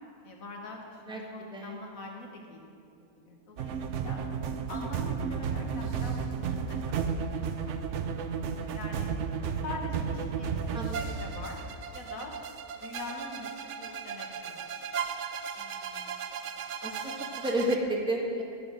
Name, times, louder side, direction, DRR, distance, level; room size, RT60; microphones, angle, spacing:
voice 1, 0.2-3.8 4.0-4.2 4.7-7.0 7.3-9.1 9.6-11.6 11.9-12.3 12.8-14.7, left 2 dB, 70° left, 1 dB, 1.8 m, -44 dB
sound 1, 3.6-17.8, right 6 dB, 65° right, 0.8 m, -34 dB
voice 2, 10.7-11.2 15.6-16.2 16.8-18.4, right 1 dB, 5° right, -1 dB, 1.1 m, -32 dB
16.0 x 6.1 x 5.2 m, 2.5 s
omnidirectional pair, 1.5 m